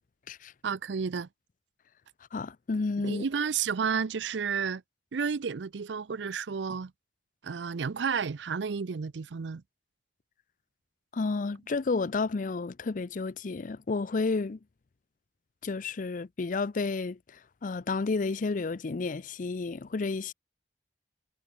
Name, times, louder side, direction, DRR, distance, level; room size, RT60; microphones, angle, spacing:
voice 1, 0.6-1.3 3.0-4.8 5.1-6.9 7.4-9.6, right 6 dB, 90° right, 0.5 m, -31 dB
voice 2, 2.3-3.2 11.1-14.6 15.6-20.3, left 3 dB, 50° left, 0.5 m, -31 dB
head